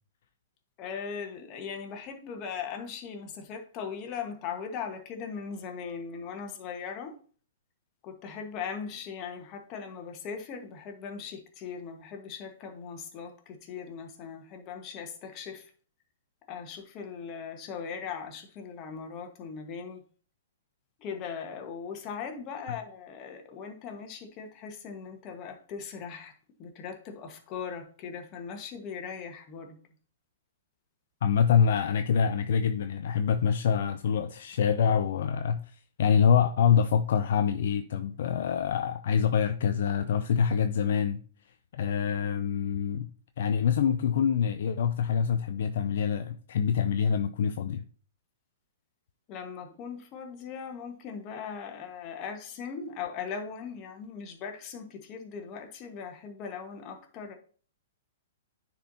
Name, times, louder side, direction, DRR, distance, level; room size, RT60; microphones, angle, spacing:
voice 1, 0.8-7.1 8.0-15.7 16.5-20.0 21.0-26.3 26.6-29.8 49.3-57.3, left 6 dB, 35° left, 1.4 m, -39 dB
voice 2, 31.2-41.2 41.7-43.1 43.4-47.8, left 7 dB, 60° left, 0.4 m, -25 dB
9.9 x 4.4 x 2.8 m
hypercardioid pair, 115°, 0 cm